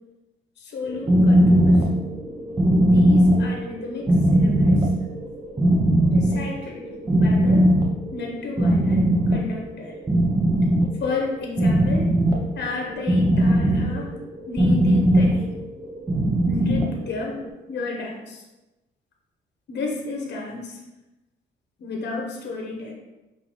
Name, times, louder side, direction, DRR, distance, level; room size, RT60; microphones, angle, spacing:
voice 1, 0.6-1.9 2.8-4.9 6.1-7.7 8.1-10.0 11.0-12.2 12.5-14.1 14.5-15.5 16.4-17.4 17.7-18.4 19.7-20.8 21.8-22.9, left 3 dB, 60° left, 1 dB, 0.9 m, -32 dB
sound 1, 0.8-17.5, right 1 dB, 20° right, 0.8 m, -20 dB
5.5 x 2.7 x 3.1 m, 1.0 s
cardioid pair, 90°, 20 cm